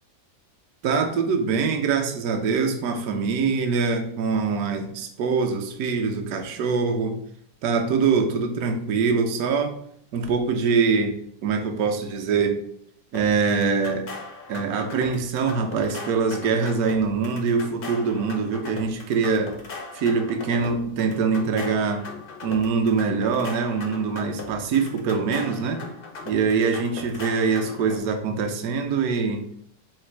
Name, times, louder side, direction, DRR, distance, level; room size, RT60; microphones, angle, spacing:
voice 1, 0.8-7.2 7.6-9.8 10.1-11.2 11.4-12.6 13.1-14.1 14.5-19.5 19.9-22.1 22.4-25.8 26.3-29.5, right 5 dB, 70° right, 4 dB, 1.0 m, -24 dB
sound 1, 13.1-28.0, left 3 dB, 80° left, 0.5 m, -39 dB
3.8 x 2.5 x 4.3 m, 0.67 s
omnidirectional pair, 1.9 m